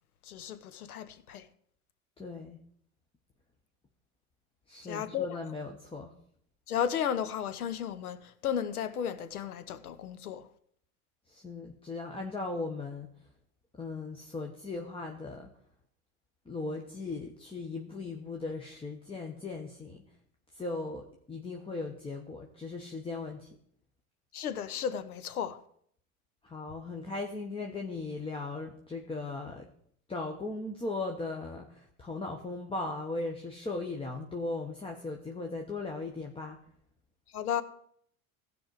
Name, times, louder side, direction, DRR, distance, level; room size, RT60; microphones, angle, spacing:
voice 1, 0.2-1.5 4.8-5.4 6.7-10.5 24.3-25.6 37.3-37.6, left 9 dB, 85° left, 0.9 m, -34 dB
voice 2, 2.2-2.6 4.7-6.2 11.3-13.1 13.7-15.5 16.4-20.0 20.5-23.5 26.4-29.7 30.1-36.6, left 3 dB, 10° left, 1.1 m, -38 dB
16.0 x 5.4 x 4.7 m
hypercardioid pair, 95°, 43 cm